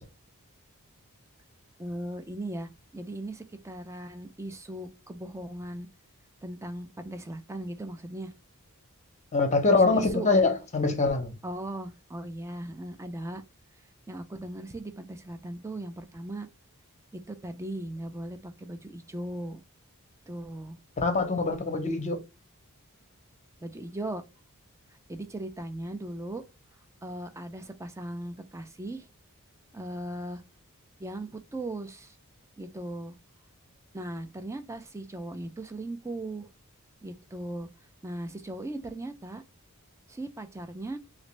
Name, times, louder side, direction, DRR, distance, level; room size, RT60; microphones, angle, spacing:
voice 1, 1.8-5.9 6.4-8.3 9.7-10.3 11.4-13.4 14.1-16.5 17.3-19.6 20.3-20.8 23.6-24.2 25.1-26.4 27.0-29.1 29.7-30.4 31.0-32.2 32.6-33.1 33.9-36.5 37.0-37.7 38.0-39.4 40.1-41.0, right 1 dB, 15° right, 0.5 m, -38 dB
voice 2, 9.3-11.3 21.0-22.2, left 3 dB, 35° left, 0.8 m, -24 dB
3.1 x 2.6 x 3.0 m
head